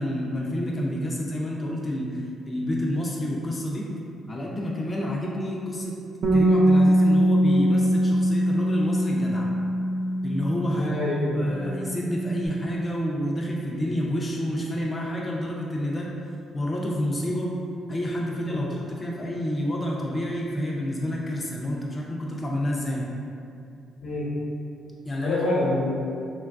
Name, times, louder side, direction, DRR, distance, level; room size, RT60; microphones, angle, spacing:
voice 1, 0.0-3.9 4.3-5.9 6.3-9.5 10.2-11.0 11.3-16.1 16.5-17.5 17.9-23.1 25.0-25.4, equal, 25° left, -3 dB, 0.3 m, -29 dB
Bass guitar, 6.2-10.9 11.2-12.5, equal, 50° right, 0.4 m, -22 dB
voice 2, 10.7-11.6 18.5-18.7 24.0-24.3 25.2-26.0, left 1 dB, 90° left, -7 dB, 0.8 m, -26 dB
3.1 x 2.2 x 2.4 m, 2.5 s
cardioid pair, 90°, 0 cm